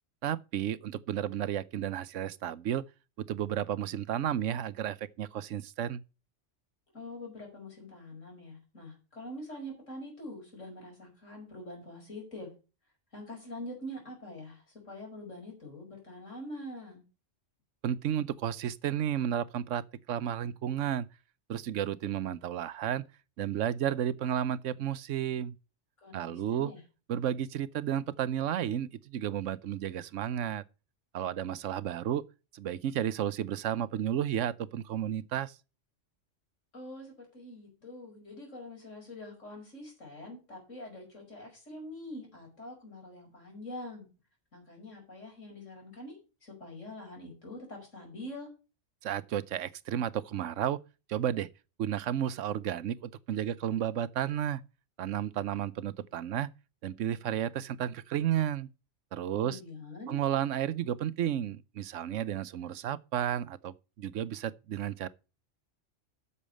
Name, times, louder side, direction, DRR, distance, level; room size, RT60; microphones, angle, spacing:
voice 1, 0.2-2.8 3.2-6.0 17.8-21.1 21.5-23.0 23.4-25.5 26.1-26.7 27.1-30.6 31.1-32.2 32.5-35.6 49.0-50.8 51.1-51.5 51.8-54.6 55.0-56.5 56.8-58.7 59.1-59.6 60.1-65.1, right 10 dB, 80° right, 1.0 m, -32 dB
voice 2, 6.9-12.5 13.1-17.0 26.0-26.8 36.7-44.1 44.5-46.2 46.4-48.5 59.3-60.2, left 1 dB, 90° left, 5.7 m, -45 dB
8.4 x 7.0 x 6.4 m
omnidirectional pair, 1.2 m